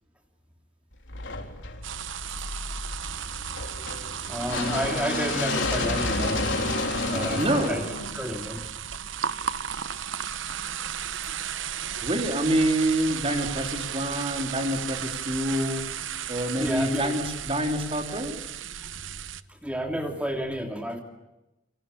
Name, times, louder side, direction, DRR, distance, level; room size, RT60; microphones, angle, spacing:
sound 1, 1.1-9.1, left 2 dB, 65° left, 3.9 m, -31 dB
sound 2, 1.8-19.4, right 9 dB, 70° right, 1.0 m, -35 dB
voice 1, 4.3-6.4 7.0-7.8 8.1-8.6 16.6-17.1 19.5-21.0, equal, 5° right, 3 dB, 2.8 m, -31 dB
voice 2, 7.4-7.8 12.0-15.9 16.3-18.4, right 1 dB, 30° right, 4 dB, 3.8 m, -27 dB
29.5 x 24.5 x 7.0 m, 0.97 s
head